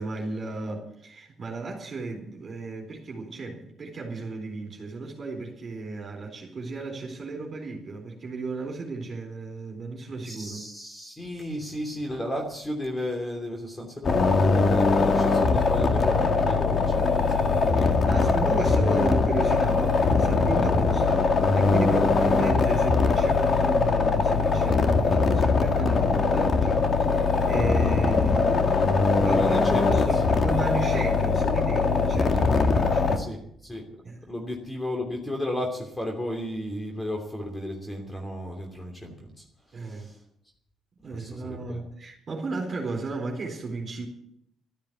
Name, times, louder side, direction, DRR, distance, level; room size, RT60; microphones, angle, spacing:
voice 1, 0.0-10.6 17.7-28.5 29.0-33.2 34.0-34.2 39.7-40.1 41.0-44.1, right 3 dB, 45° right, 4.2 m, -34 dB
voice 2, 10.2-18.4 20.5-20.8 21.8-21.9 29.3-30.2 33.1-40.2 41.1-41.8, left 1 dB, 15° left, 3.1 m, -34 dB
sound 1, 14.0-33.2, left 4 dB, 45° left, 1.9 m, -22 dB
13.5 x 13.0 x 8.2 m
cardioid pair, 90°, 0 cm